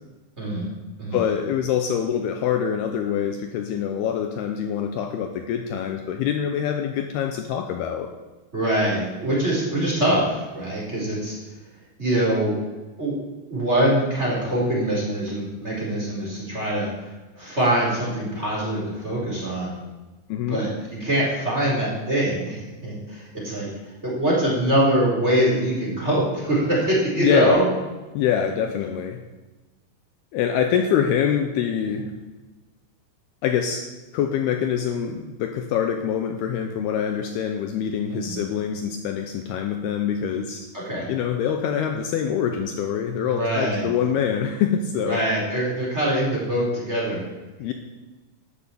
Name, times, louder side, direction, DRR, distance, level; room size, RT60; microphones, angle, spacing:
voice 1, 0.4-0.7 1.0-1.2 8.5-11.4 12.0-12.6 13.0-13.2 13.5-17.1 17.3-19.8 20.5-27.6 38.1-38.4 40.7-41.1 43.2-43.9 45.0-47.2, right 1 dB, 15° right, -5 dB, 3.8 m, -23 dB
voice 2, 1.1-8.1 20.3-20.6 27.2-27.6 28.1-29.2 30.3-32.1 33.4-33.8 34.1-40.7 41.1-45.2 47.6-47.7, left 8 dB, 90° left, 5 dB, 2.2 m, -25 dB
12.5 x 8.5 x 8.5 m, 1.2 s
omnidirectional pair, 5.7 m